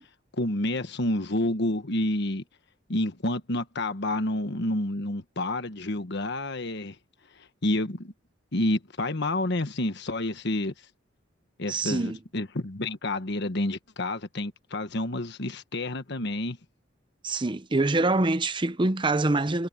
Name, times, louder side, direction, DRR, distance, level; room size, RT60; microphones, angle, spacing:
voice 1, 0.4-2.4 2.9-7.0 7.4-8.1 8.5-10.7 11.6-16.6, left 1 dB, 60° left, 1.4 m, -29 dB
voice 2, 11.7-12.2 17.2-19.7, right 2 dB, 25° right, 0.7 m, -25 dB
head